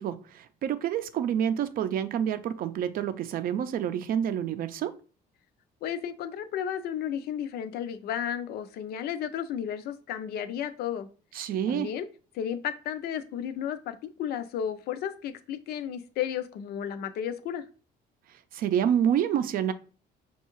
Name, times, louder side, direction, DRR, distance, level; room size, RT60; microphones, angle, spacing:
voice 1, 0.0-5.0 11.3-11.9 18.5-19.7, right 9 dB, 60° right, 0.4 m, -28 dB
voice 2, 5.8-11.1 11.7-12.1 12.3-17.6, left 9 dB, 70° left, 0.5 m, -33 dB
5.5 x 2.3 x 3.0 m
cardioid pair, 110°, 17 cm